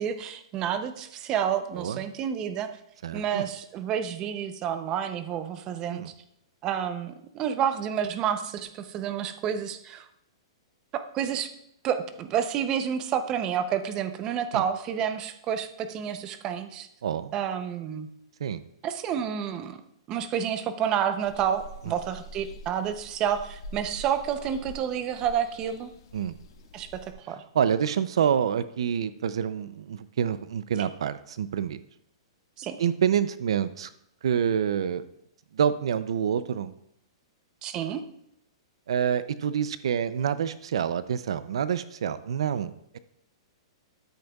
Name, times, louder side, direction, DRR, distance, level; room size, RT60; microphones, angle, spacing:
voice 1, 0.0-2.8 3.1-6.1 6.6-10.1 10.9-11.5 11.8-16.9 17.3-18.1 18.8-19.8 20.1-25.9 26.7-27.4 30.8-30.9 32.6-32.8 37.6-38.0, right 8 dB, 25° right, 9 dB, 0.6 m, -29 dB
voice 2, 3.0-3.5 5.9-6.1 14.5-14.6 17.0-17.3 18.4-18.6 26.1-26.4 27.5-31.8 32.8-33.9 34.2-35.0 35.5-36.7 38.9-43.0, right 8 dB, 75° right, 14 dB, 0.5 m, -27 dB
sound 1, 21.2-27.1, equal, 65° left, 1.7 m, -45 dB
12.5 x 8.0 x 2.3 m, 0.75 s
hypercardioid pair, 160°, 3 cm